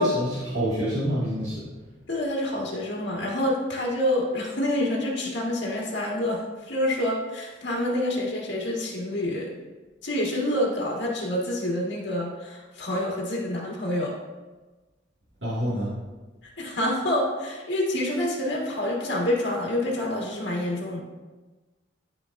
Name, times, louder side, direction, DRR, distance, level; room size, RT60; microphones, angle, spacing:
voice 1, 0.0-1.7 15.4-15.9, equal, 65° right, -10 dB, 1.9 m, -27 dB
voice 2, 2.1-6.4 6.7-9.5 10.0-14.1 16.6-21.0, left 1 dB, 65° left, -3 dB, 1.6 m, -27 dB
12.0 x 4.5 x 2.5 m, 1.2 s
head